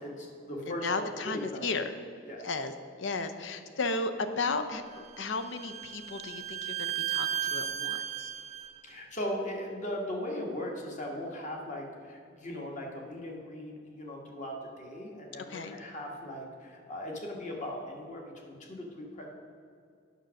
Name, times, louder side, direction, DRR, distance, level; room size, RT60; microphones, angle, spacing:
voice 1, 0.0-1.6 2.2-2.5 8.8-19.3, left 1 dB, 40° left, 0 dB, 1.6 m, -38 dB
voice 2, 0.7-1.9 2.4-2.7 3.0-8.3 15.5-15.7, left 3 dB, 65° left, 8 dB, 0.7 m, -34 dB
Bowed string instrument, 4.9-8.7, right 10 dB, 35° right, 0.4 m, -35 dB
9.3 x 6.2 x 6.4 m, 2.3 s
head